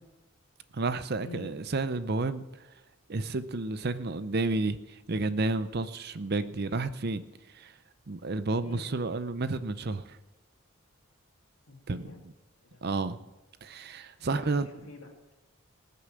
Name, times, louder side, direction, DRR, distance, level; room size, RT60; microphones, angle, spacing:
voice 1, 0.7-2.4 3.1-7.2 7.5-7.7 8.1-10.2 11.9-12.1 12.8-13.2 13.6-14.7, right 3 dB, 45° right, 13 dB, 0.6 m, -31 dB
voice 2, 11.7-12.2 12.7-12.9 14.2-15.3, left 2 dB, 65° left, 1 dB, 2.6 m, -46 dB
19.5 x 6.9 x 7.7 m, 1.0 s
head